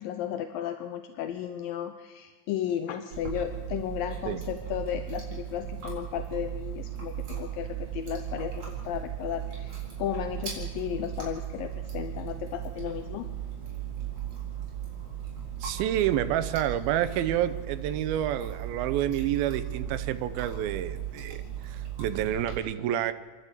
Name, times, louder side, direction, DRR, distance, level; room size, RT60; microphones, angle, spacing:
voice 1, 0.0-13.3, left 10 dB, 80° left, 8 dB, 2.5 m, -34 dB
Chewing mastication, 3.1-22.6, right 10 dB, 45° right, 5.2 m, -37 dB
voice 2, 15.6-23.1, right 11 dB, 85° right, 12 dB, 2.7 m, -29 dB
27.5 x 11.5 x 8.3 m, 1.4 s
omnidirectional pair, 4.2 m